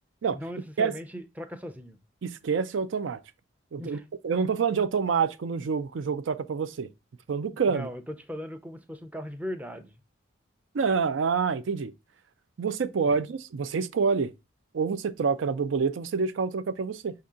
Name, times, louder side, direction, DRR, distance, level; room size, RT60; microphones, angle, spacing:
voice 1, 0.3-2.0 3.8-4.1 7.7-10.0 13.1-13.2, equal, 10° right, 0.5 m, -38 dB
voice 2, 2.2-3.2 3.7-4.0 4.2-6.9 7.3-7.9 10.7-11.9 12.6-14.3 14.7-17.1, right 5 dB, 75° right, 0.4 m, -27 dB
5.4 x 2.7 x 3.6 m
head